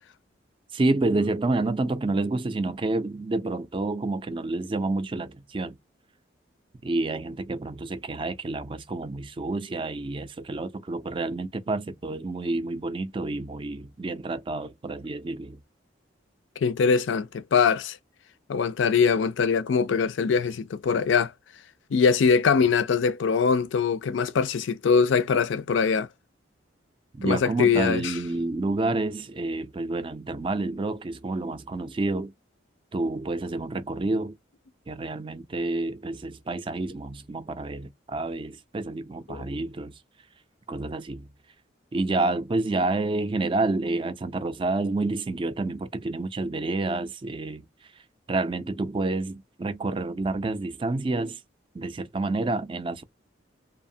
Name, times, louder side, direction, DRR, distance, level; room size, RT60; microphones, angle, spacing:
voice 1, 0.7-5.8 6.8-15.6 27.1-32.3 32.9-34.4 34.9-40.0 40.7-41.3 41.9-47.7 48.3-51.4 51.7-53.0, right 2 dB, 30° right, 0.4 m, -29 dB
voice 2, 16.6-18.0 18.5-21.3 21.9-26.1 27.2-28.1 39.3-39.5, left 6 dB, 80° left, 0.4 m, -22 dB
2.7 x 2.1 x 2.6 m
head